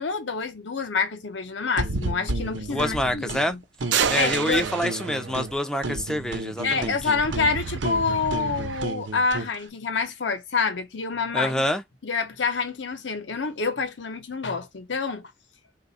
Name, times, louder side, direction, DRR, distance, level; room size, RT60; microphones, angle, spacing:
voice 1, 0.0-3.6 4.1-4.7 6.6-11.7 12.0-15.3, left 4 dB, 80° left, 0.8 m, -27 dB
sound 1, 1.8-3.4 3.8-5.6 5.8-9.5, right 2 dB, 90° right, 0.9 m, -32 dB
voice 2, 2.7-3.6 4.1-7.0 11.3-11.8, equal, 5° left, 0.4 m, -26 dB
sound 2, 3.9-5.8 7.2-8.8, right 8 dB, 75° right, 0.4 m, -29 dB
3.2 x 2.4 x 4.0 m
head